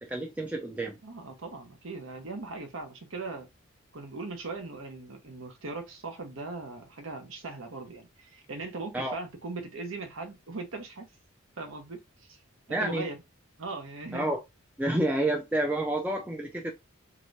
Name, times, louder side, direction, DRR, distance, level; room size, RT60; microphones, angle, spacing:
voice 1, 0.0-1.0 8.9-9.2 12.7-13.1 14.1-14.4 14.8-16.7, right 1 dB, 5° right, 0.4 m, -29 dB
voice 2, 1.0-3.5 3.9-11.1 11.6-12.4 12.7-13.2 13.6-14.3, right 3 dB, 70° right, 0.9 m, -39 dB
2.8 x 2.5 x 3.2 m
head